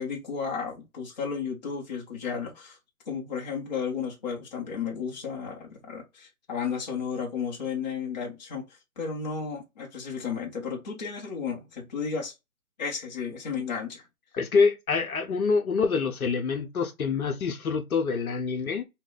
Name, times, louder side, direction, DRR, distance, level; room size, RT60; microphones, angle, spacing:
voice 1, 0.0-2.8 3.1-8.7 9.0-12.3 12.8-14.0, left 6 dB, 30° left, 0.7 m, -33 dB
voice 2, 14.3-18.8, left 5 dB, 70° left, 0.8 m, -26 dB
2.3 x 2.1 x 3.9 m
hypercardioid pair, 155°, 44 cm